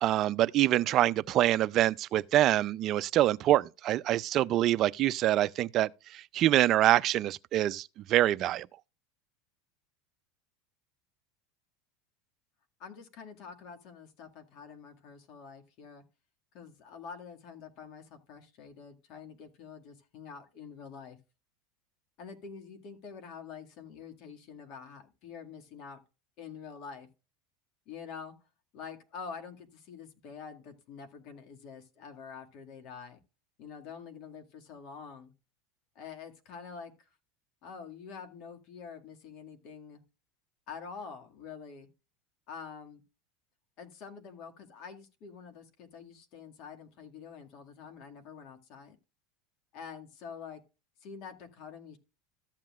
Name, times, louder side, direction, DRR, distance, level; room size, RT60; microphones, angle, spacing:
voice 1, 0.0-8.7, right 13 dB, 45° right, 0.4 m, -25 dB
voice 2, 12.8-16.0 16.5-21.2 22.2-26.0 26.4-27.1 27.9-28.4 28.7-33.2 33.6-35.3 36.0-37.1 37.6-40.0 40.7-41.9 42.5-43.0 43.8-49.0 49.7-50.6 51.0-52.0, left 6 dB, 55° left, 2.0 m, -46 dB
14.0 x 7.4 x 2.4 m
supercardioid pair, 120°, 0 cm